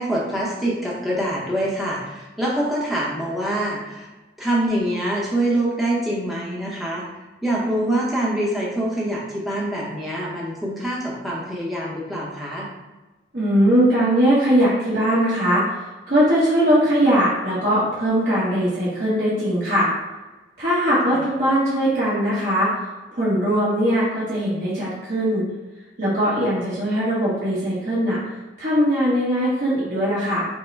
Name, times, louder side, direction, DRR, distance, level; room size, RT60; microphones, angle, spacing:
voice 1, 0.0-4.1 4.4-7.0 7.4-12.7 21.1-21.2, right 1 dB, ahead, -6 dB, 0.8 m, -25 dB
voice 2, 13.3-19.9 20.6-22.7 23.1-25.4 26.0-28.2 28.6-30.5, equal, 55° right, -10 dB, 1.3 m, -20 dB
5.3 x 2.1 x 4.5 m, 1.1 s
head